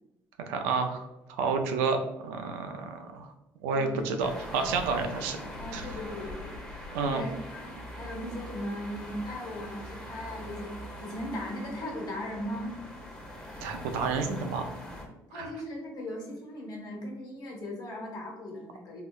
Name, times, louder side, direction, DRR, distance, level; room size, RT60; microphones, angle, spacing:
voice 1, 0.5-3.3 3.6-5.4 5.7-6.0 6.9-7.2 13.6-14.7 15.3-15.5, right 4 dB, 90° right, 6 dB, 0.4 m, -30 dB
voice 2, 3.7-4.0 5.6-6.6 7.0-12.8 15.3-19.0, left 1 dB, 55° left, -1 dB, 1.1 m, -38 dB
sound 1, 4.2-15.1, left 1 dB, 15° left, 0.9 m, -42 dB
3.7 x 2.1 x 2.3 m, 0.96 s
supercardioid pair, 70°, 8 cm